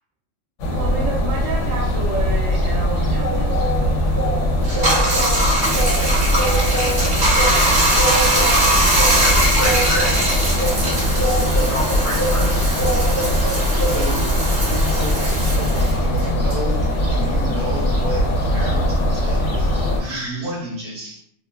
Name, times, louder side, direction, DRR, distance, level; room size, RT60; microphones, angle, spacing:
sound 1, 0.6-20.0, equal, 75° left, 0.9 m, -21 dB
voice 1, 0.7-4.0, right 2 dB, 90° right, -6 dB, 1.0 m, -30 dB
sound 2, 1.4-20.2, right 1 dB, 20° left, 0.4 m, -29 dB
Bathtub (filling or washing), 4.6-17.4 17.8-19.6, right 1 dB, 45° right, 0.8 m, -21 dB
voice 2, 8.5-13.9, left 1 dB, 50° left, -8 dB, 0.8 m, -31 dB
voice 3, 13.8-21.2, equal, 65° right, -3 dB, 1.2 m, -32 dB
2.9 x 2.2 x 2.2 m, 0.71 s
omnidirectional pair, 1.3 m